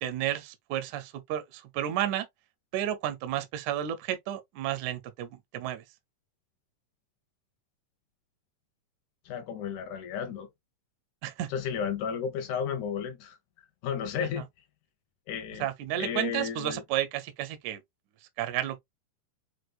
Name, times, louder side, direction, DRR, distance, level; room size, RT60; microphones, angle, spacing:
voice 1, 0.0-2.3 2.7-5.8 11.2-11.5 15.6-17.8 18.4-18.8, right 12 dB, 80° right, 1.8 m, -32 dB
voice 2, 9.3-10.5 11.5-13.4 13.8-14.5 15.3-15.7 16.0-16.8, left 7 dB, 70° left, 2.2 m, -33 dB
6.0 x 2.6 x 2.3 m
omnidirectional pair, 3.8 m